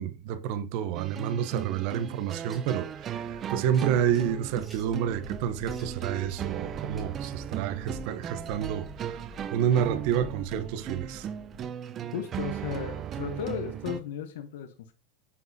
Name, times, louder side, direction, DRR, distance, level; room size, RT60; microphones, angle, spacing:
voice 1, 0.0-9.2 9.5-11.3, right 9 dB, 60° right, 0.7 m, -29 dB
sound 1, 0.9-14.0, right 9 dB, 30° right, 0.4 m, -37 dB
sound 2, 2.3-11.7, left 4 dB, 35° left, 1.1 m, -49 dB
sound 3, 2.4-2.8 3.7-4.9 5.5-6.0 6.9-7.5, right 3 dB, 15° right, 1.7 m, -55 dB
voice 2, 12.1-14.9, left 8 dB, 90° left, 0.8 m, -35 dB
9.1 x 4.0 x 2.7 m
supercardioid pair, 145°, 0 cm